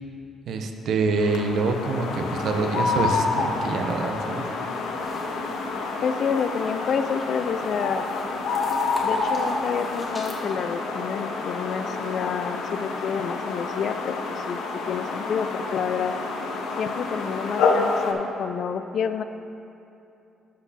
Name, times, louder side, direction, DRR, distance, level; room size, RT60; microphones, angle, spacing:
voice 1, 0.5-4.5, right 3 dB, 65° right, 5 dB, 0.6 m, -26 dB
sound 1, 1.1-18.1, left 4 dB, 85° left, 0.7 m, -28 dB
sound 2, 4.6-10.4, left 1 dB, 20° left, 1.2 m, -42 dB
voice 2, 6.0-8.1 9.0-14.6 14.9-16.1 16.8-19.2, left 7 dB, 55° left, 10 dB, 0.3 m, -29 dB
11.0 x 6.0 x 2.8 m, 2.8 s
cardioid pair, 110°, 0 cm